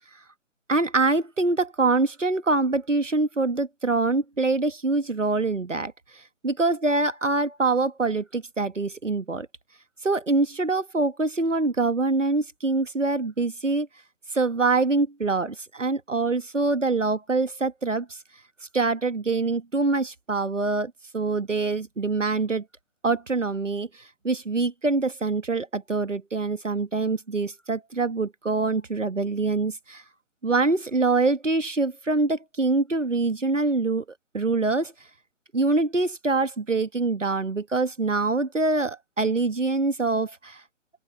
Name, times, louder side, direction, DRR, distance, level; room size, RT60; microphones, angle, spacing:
voice 1, 0.7-9.5 10.0-13.9 14.3-18.2 18.7-22.6 23.0-30.0 30.4-34.0 34.3-34.9 35.5-40.6, right 3 dB, 85° right, 1.3 m, -25 dB
open air
figure-of-eight pair, 135°, 36 cm